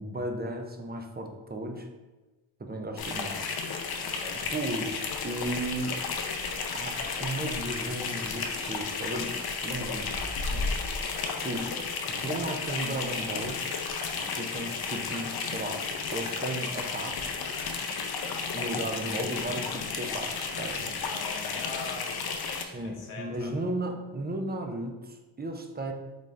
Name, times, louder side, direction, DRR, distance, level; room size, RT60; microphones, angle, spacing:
voice 1, 0.0-1.9 2.6-3.5 4.5-6.0 6.7-9.3 9.6-10.2 11.4-11.7 12.2-13.6 14.4-17.4 18.5-20.9 22.6-25.9, right 1 dB, 20° right, 4 dB, 0.4 m, -35 dB
sound 1, 3.0-22.6, left 4 dB, 55° left, 0.5 m, -33 dB
voice 2, 4.0-4.4 10.4-10.8 14.0-14.4 20.7-22.2 22.8-23.6, left 4 dB, 85° left, 0 dB, 0.8 m, -43 dB
4.0 x 2.3 x 3.2 m, 1.2 s
cardioid pair, 70°, 47 cm